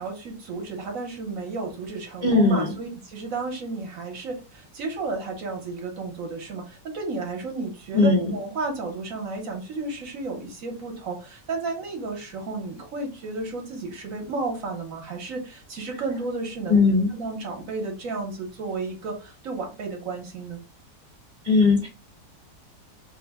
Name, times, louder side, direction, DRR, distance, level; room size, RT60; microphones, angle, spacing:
voice 1, 0.0-16.8 17.1-20.6, right 3 dB, 60° right, 2 dB, 1.1 m, -32 dB
voice 2, 2.2-2.7 7.9-8.3 16.7-17.1 21.5-21.9, left 3 dB, 60° left, 0 dB, 0.5 m, -19 dB
3.2 x 2.1 x 3.4 m, 0.31 s
omnidirectional pair, 1.9 m